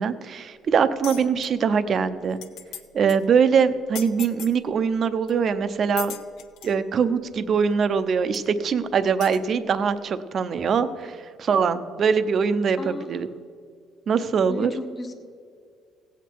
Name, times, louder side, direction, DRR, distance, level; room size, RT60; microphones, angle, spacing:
voice 1, 0.0-2.4 2.9-6.1 6.6-13.3 14.1-14.7, right 6 dB, 40° right, 12 dB, 0.6 m, -22 dB
sound 1, 1.0-1.5 2.0-2.1 2.3-2.8 3.1-3.2 3.9-4.6 5.3-5.4 6.0-6.8 7.7-7.8 8.3-8.4 9.2-9.4, left 10 dB, 85° left, 0.8 m, -37 dB
voice 2, 12.8-13.3 14.5-15.1, left 2 dB, 25° left, 6 dB, 1.0 m, -35 dB
17.0 x 8.1 x 4.6 m, 2.2 s
cardioid pair, 150°, 0 cm